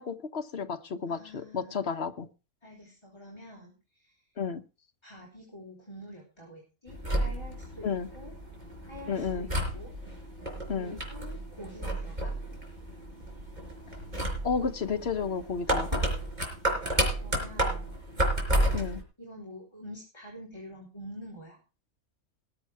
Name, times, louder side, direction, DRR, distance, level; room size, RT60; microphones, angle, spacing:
voice 1, 0.0-2.3 4.4-4.6 7.8-8.1 9.1-9.5 10.7-11.0 14.4-16.1 18.7-19.0, left 5 dB, 50° left, 1.2 m, -32 dB
voice 2, 1.1-2.0 2.6-4.3 5.0-7.9 8.1-8.3 8.8-9.9 10.7-12.4 17.2-17.9 19.2-21.6, equal, 20° left, 3.9 m, -47 dB
sound 1, 6.9-19.0, right 1 dB, 30° right, 4.9 m, -32 dB
20.0 x 7.5 x 4.7 m
omnidirectional pair, 1.5 m